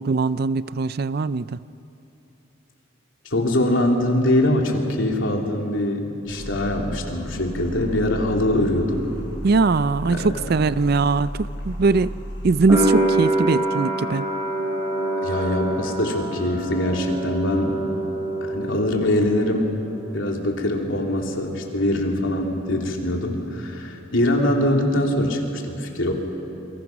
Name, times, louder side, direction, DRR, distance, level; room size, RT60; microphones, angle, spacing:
voice 1, 0.0-1.6 9.4-12.2 12.4-14.3, right 4 dB, 50° right, 16 dB, 0.5 m, -21 dB
voice 2, 3.3-9.1 10.1-10.3 15.2-17.8 18.4-19.7 20.1-26.1, left 1 dB, 80° left, 1 dB, 3.1 m, -23 dB
sound 1, 6.2-12.7, equal, 60° left, 7.7 m, -34 dB
sound 2, 12.7-19.5 19.7-20.6, right 1 dB, 15° right, 5.5 m, -26 dB
28.0 x 24.0 x 6.0 m, 3.0 s
head